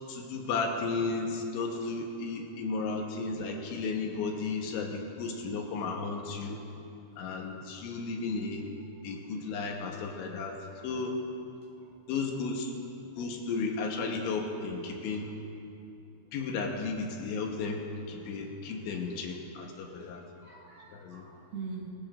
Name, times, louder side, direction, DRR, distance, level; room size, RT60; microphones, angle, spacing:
voice 1, 0.1-6.6 7.2-8.7 9.0-10.6 10.8-11.2 12.1-12.8 13.2-15.4 16.3-17.8 18.1-20.2 20.9-21.3, left 4 dB, 80° left, 1 dB, 3.3 m, -34 dB
voice 2, 19.9-21.9, right 4 dB, 70° right, -3 dB, 2.5 m, -43 dB
19.5 x 18.5 x 2.6 m, 2.7 s
omnidirectional pair, 5.7 m